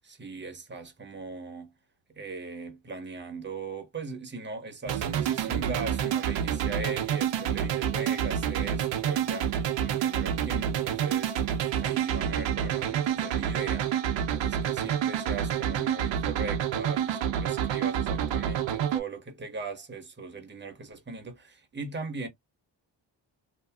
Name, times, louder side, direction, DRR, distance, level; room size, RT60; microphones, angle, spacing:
voice 1, 0.0-1.7 2.2-11.4 11.8-22.3, right 3 dB, 25° right, 0.9 m, -39 dB
sound 1, 4.9-19.0, right 9 dB, 80° right, 0.6 m, -28 dB
2.8 x 2.6 x 2.3 m
wide cardioid pair, 110°, 44 cm